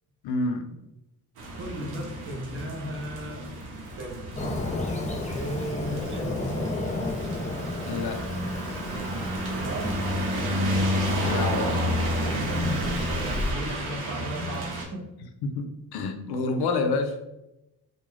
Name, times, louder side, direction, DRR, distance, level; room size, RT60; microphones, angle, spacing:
voice 1, 0.2-0.7 7.9-8.3 11.1-11.8 15.4-17.2, left 3 dB, 85° left, 6 dB, 0.5 m, -28 dB
sound 1, 1.4-14.8, equal, 85° right, 0.7 m, -30 dB
voice 2, 1.5-3.5 4.0-4.3 5.3-7.3 9.6-10.1 12.2-15.1, equal, 35° right, 1 dB, 0.6 m, -35 dB
Fireworks, 4.4-13.5, left 2 dB, 20° left, 0.4 m, -34 dB
2.4 x 2.2 x 3.1 m, 0.91 s
cardioid pair, 75°, 37 cm